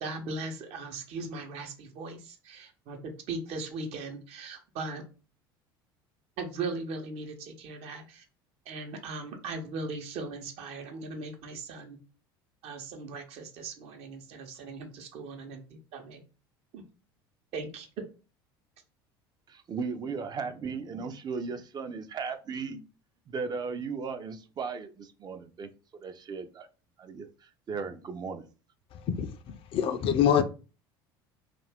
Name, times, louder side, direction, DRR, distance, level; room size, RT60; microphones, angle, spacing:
voice 1, 0.0-5.0 6.4-8.2 8.7-12.0 12.6-15.6 15.9-16.2 16.7-16.8 17.5-17.9, right 3 dB, 60° right, 0.8 m, -38 dB
voice 2, 19.5-22.8 23.3-25.7 26.0-26.7 27.0-28.4, right 5 dB, 35° right, 0.5 m, -36 dB
voice 3, 29.7-30.4, left 9 dB, 50° left, 0.4 m, -23 dB
2.5 x 2.2 x 3.4 m
hypercardioid pair, 70°, 12 cm